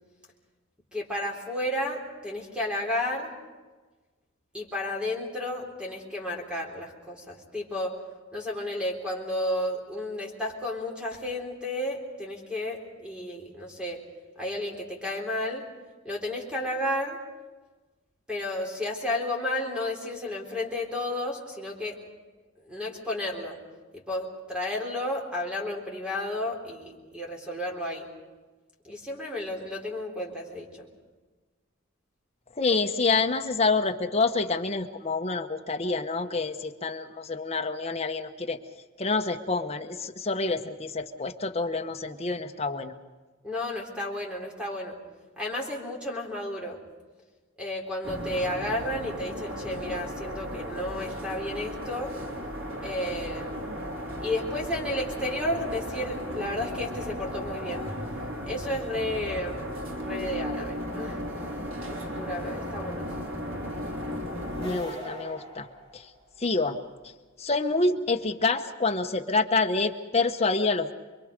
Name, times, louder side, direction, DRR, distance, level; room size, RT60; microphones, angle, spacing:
voice 1, 0.9-3.3 4.5-8.0 8.3-14.0 14.4-15.7 16.0-17.2 18.3-22.0 22.6-23.6 23.9-28.1 28.8-30.9 43.4-45.0 45.4-46.8 47.6-52.2 52.8-53.7 54.2-57.9 58.4-61.2 61.9-63.1, left 1 dB, 5° right, -1 dB, 3.7 m, -32 dB
voice 2, 32.6-38.6 39.0-42.9 64.6-65.7 65.9-66.1 66.4-66.8 67.4-70.9, left 3 dB, 30° left, 5 dB, 1.1 m, -27 dB
sound 1, 48.0-64.8, equal, 85° right, 3.4 m, -35 dB
sound 2, 64.5-66.5, equal, 35° right, 5.6 m, -41 dB
27.5 x 22.5 x 5.3 m, 1.3 s
head